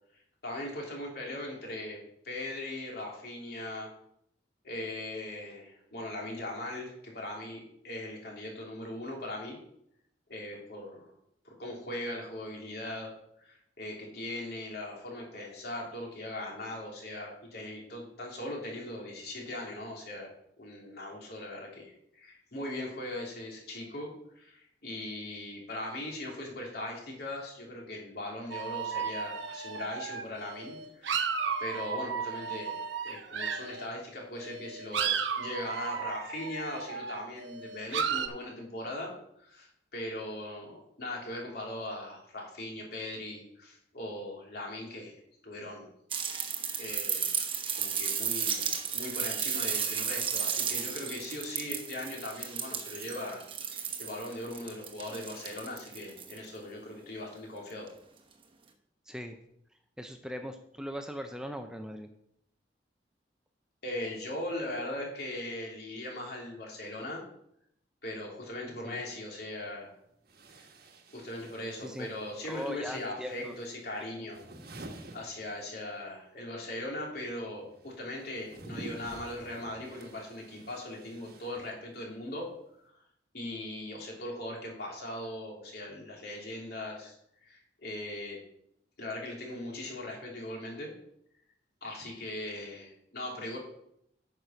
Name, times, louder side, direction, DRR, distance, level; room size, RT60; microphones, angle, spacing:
voice 1, 0.4-2.0 2.2-3.9 4.6-9.6 10.3-11.1 11.4-13.1 13.4-20.3 20.6-32.7 33.0-45.1 45.4-45.9 46.8-47.4 47.7-53.4 53.7-57.9 63.8-67.2 68.0-69.9 70.5-70.7 71.1-74.4 75.1-82.5 82.9-83.0 83.3-87.2 87.4-88.4 89.0-90.9 91.8-93.6, left 1 dB, 60° left, -1 dB, 3.1 m, -39 dB
sound 1, 28.5-33.9 34.4-38.3, right 6 dB, 90° right, 0.8 m, -34 dB
sound 2, 46.1-56.5 57.9-58.0, right 7 dB, 30° right, 1.0 m, -34 dB
voice 2, 59.1-59.4 60.0-62.1 68.8-69.0 71.8-72.1 72.5-73.6 74.0-74.1 74.5-74.7, equal, 5° right, 6 dB, 0.6 m, -40 dB
sound 3, 69.3-69.4 70.3-76.1 76.3-82.2, right 2 dB, 60° right, 1.2 m, -50 dB
9.0 x 6.6 x 5.7 m, 0.74 s
head